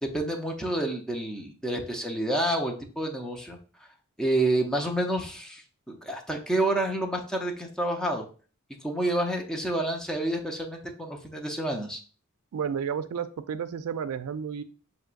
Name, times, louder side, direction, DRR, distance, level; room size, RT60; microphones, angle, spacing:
voice 1, 0.0-3.6 4.2-8.2 8.8-12.0, right 1 dB, 5° left, 1 dB, 0.6 m, -29 dB
voice 2, 12.5-14.6, right 7 dB, 85° right, 12 dB, 0.4 m, -31 dB
5.8 x 2.9 x 2.5 m, 0.39 s
head